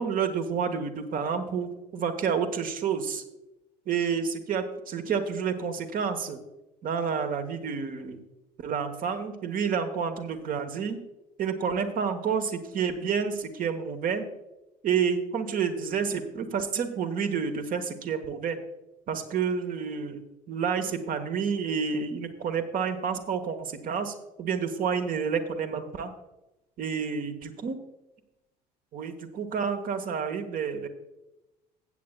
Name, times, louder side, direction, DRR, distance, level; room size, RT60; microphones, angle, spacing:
voice 1, 0.0-3.2 3.9-6.4 6.8-8.2 8.6-11.0 11.4-14.2 14.8-18.6 19.1-26.1 26.8-27.8 28.9-30.9, right 6 dB, 45° right, 8 dB, 1.1 m, -29 dB
15.5 x 8.5 x 2.2 m, 0.97 s
figure-of-eight pair, 55°, 21 cm